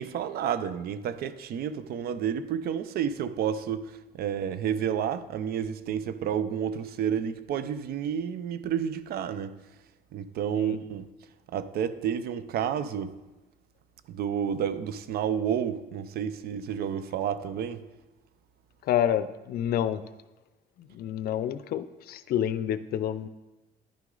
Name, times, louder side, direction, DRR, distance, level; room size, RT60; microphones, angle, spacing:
voice 1, 0.0-9.5 10.1-11.1 11.5-13.1 14.1-17.8, right 8 dB, 65° right, 0.6 m, -30 dB
voice 2, 18.9-20.0 20.8-23.3, left 10 dB, 65° left, 0.5 m, -28 dB
10.0 x 6.1 x 3.8 m
cardioid pair, 110°, 17 cm